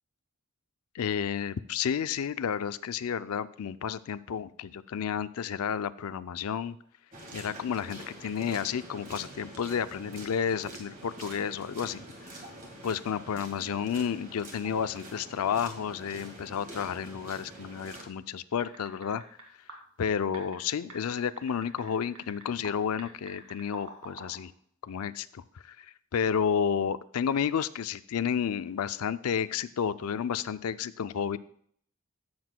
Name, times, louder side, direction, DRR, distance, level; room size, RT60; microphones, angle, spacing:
voice 1, 0.9-6.8 7.3-12.3 12.8-19.2 20.0-24.5 24.8-31.4, left 7 dB, 85° left, 14 dB, 0.4 m, -31 dB
sound 1, 7.1-18.0, right 1 dB, 35° right, 1.7 m, -46 dB
sound 2, 18.6-19.4 19.7-19.8 20.3-22.7 23.0-24.4, right 3 dB, 75° right, 2.2 m, -46 dB
13.5 x 7.8 x 2.2 m, 0.62 s
head